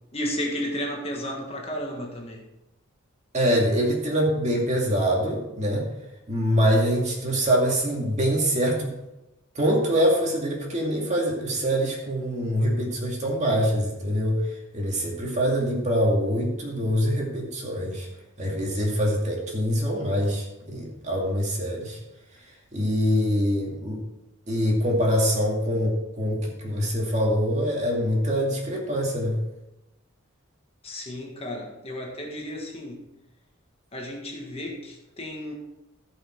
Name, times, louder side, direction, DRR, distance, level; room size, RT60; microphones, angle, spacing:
voice 1, 0.1-2.4 30.8-33.1 33.9-35.5, equal, 30° left, 0 dB, 1.6 m, -33 dB
voice 2, 3.3-5.9 6.3-8.9 9.5-14.4 14.7-18.1 18.4-22.0 22.7-24.0 24.5-29.4, equal, 35° right, -1 dB, 2.3 m, -24 dB
15.0 x 5.7 x 4.6 m, 0.95 s
head